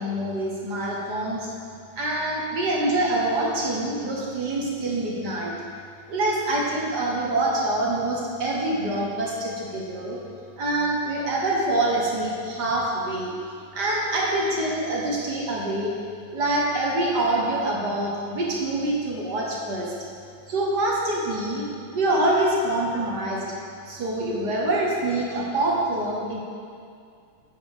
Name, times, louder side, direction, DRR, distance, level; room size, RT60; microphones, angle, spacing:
voice 1, 0.0-1.5 1.9-5.5 6.1-10.2 10.6-13.3 13.7-15.9 16.3-19.9 20.5-21.6 21.9-23.4 23.8-26.4, right 1 dB, 50° right, -3 dB, 1.3 m, -25 dB
11.0 x 9.2 x 3.6 m, 2.3 s
omnidirectional pair, 3.3 m